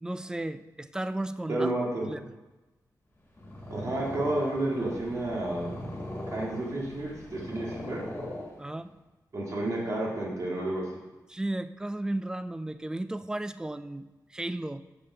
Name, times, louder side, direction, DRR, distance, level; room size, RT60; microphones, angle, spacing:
voice 1, 0.0-1.7 2.1-2.2 8.6-8.9 11.3-14.8, right 1 dB, 10° right, 12 dB, 0.3 m, -34 dB
voice 2, 1.5-2.1 3.7-5.7 6.3-8.0 9.3-10.9, right 1 dB, 45° right, -3 dB, 2.1 m, -31 dB
Purr, 3.2-8.9, left 1 dB, 30° left, 1.9 m, -40 dB
6.8 x 5.4 x 5.4 m, 1.1 s
wide cardioid pair, 130°, 7 cm